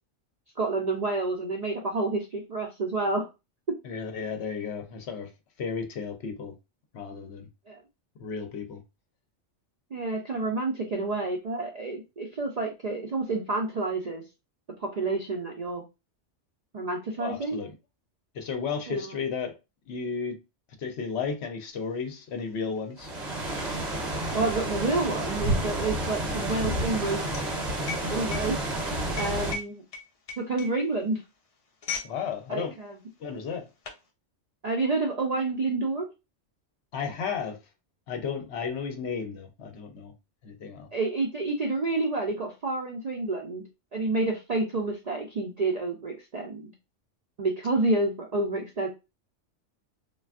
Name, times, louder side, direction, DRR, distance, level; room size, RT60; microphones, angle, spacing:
voice 1, 0.6-3.3 7.7-7.8 9.9-14.2 14.8-15.8 16.7-17.6 18.9-19.1 24.3-27.3 28.1-28.9 29.2-29.8 30.4-31.2 32.5-32.9 34.6-36.1 40.9-43.6 43.9-46.7 47.4-48.9, right 3 dB, 60° right, 0.4 m, -29 dB
voice 2, 3.8-5.3 5.6-6.5 6.9-7.5 8.2-8.8 17.2-17.7 18.3-19.5 19.9-20.4 20.8-23.1 32.0-32.7 33.2-33.7 36.9-37.6 38.1-40.1 40.4-40.9, left 6 dB, 70° left, 0.8 m, -33 dB
sound 1, 21.9-22.0 22.2-32.2 32.5-32.7 33.4-34.1, left 5 dB, 45° left, 0.5 m, -40 dB
sound 2, 23.0-29.5, right 1 dB, 40° right, 0.8 m, -30 dB
3.2 x 2.3 x 2.3 m
omnidirectional pair, 1.2 m